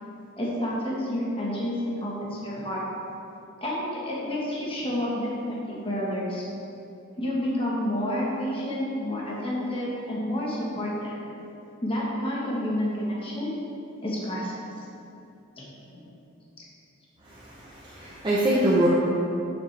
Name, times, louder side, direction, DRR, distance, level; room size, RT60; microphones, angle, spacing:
voice 1, 0.4-2.8 3.6-6.4 7.2-11.1 11.8-13.6 14.0-14.7 15.6-15.7 15.9-16.0, left 1 dB, 25° left, -5 dB, 1.3 m, -29 dB
voice 2, 17.3-18.9, right 1 dB, 20° right, -8 dB, 0.9 m, -24 dB
8.6 x 7.4 x 3.3 m, 2.8 s
head